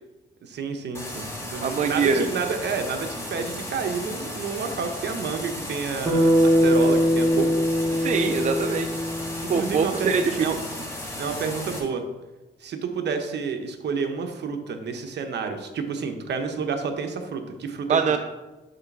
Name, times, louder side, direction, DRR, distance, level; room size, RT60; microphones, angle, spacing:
voice 1, 0.4-7.5 9.5-10.6 11.2-12.1 12.6-18.0, right 5 dB, 65° right, 5 dB, 0.9 m, -30 dB
sound 1, 0.9-11.8, left 1 dB, 15° left, 2.2 m, -35 dB
voice 2, 1.6-2.3 7.9-8.9 9.5-10.6 17.9-18.2, right 5 dB, 40° right, 7 dB, 0.4 m, -23 dB
Bass guitar, 6.1-10.4, equal, 25° right, 1.3 m, -22 dB
8.0 x 3.3 x 6.0 m, 1.1 s
cardioid pair, 110°, 19 cm